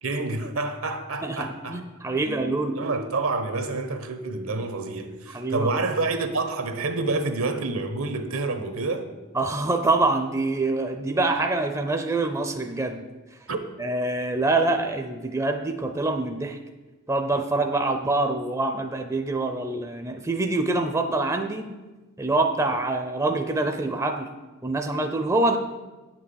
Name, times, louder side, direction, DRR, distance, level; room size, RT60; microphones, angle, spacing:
voice 1, 0.0-1.9 2.2-9.1 13.5-13.6, right 3 dB, 70° right, 1.1 m, -28 dB
voice 2, 1.2-2.8 5.3-5.7 9.3-13.0 13.8-16.6 17.1-21.7 22.2-24.3 24.6-25.6, right 2 dB, 15° right, 0.6 m, -25 dB
8.9 x 6.0 x 8.0 m
head